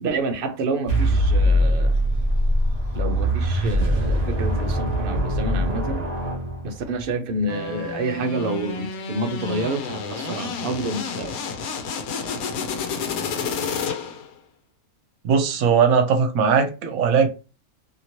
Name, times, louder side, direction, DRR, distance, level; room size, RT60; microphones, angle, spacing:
voice 1, 0.0-2.0 2.9-6.0 6.6-11.3, right 2 dB, 65° right, 0.5 m, -28 dB
sound 1, 0.9-7.0, equal, 35° right, 0.8 m, -22 dB
sound 2, 7.5-14.3, left 6 dB, 85° left, 1.1 m, -30 dB
voice 2, 15.2-17.3, right 6 dB, 80° right, 1.0 m, -19 dB
2.8 x 2.8 x 2.9 m
omnidirectional pair, 1.5 m